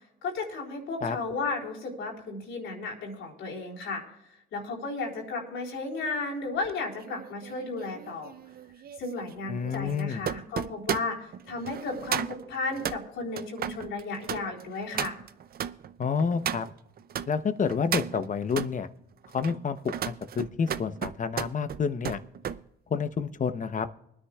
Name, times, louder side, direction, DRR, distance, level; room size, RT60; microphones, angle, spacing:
voice 1, 0.2-4.0 4.5-8.3 9.0-15.2, left 3 dB, 85° left, -4 dB, 4.0 m, -34 dB
sound 1, 6.6-17.3 17.7-18.7 19.2-22.6 23.0-23.3, right 9 dB, 50° right, 0.5 m, -35 dB
voice 2, 9.5-10.2 16.0-16.7 17.3-18.9 19.3-22.2 22.9-23.9, left 6 dB, 40° left, 11 dB, 0.9 m, -29 dB
25.0 x 9.9 x 2.4 m, 0.81 s
cardioid pair, 90°, 20 cm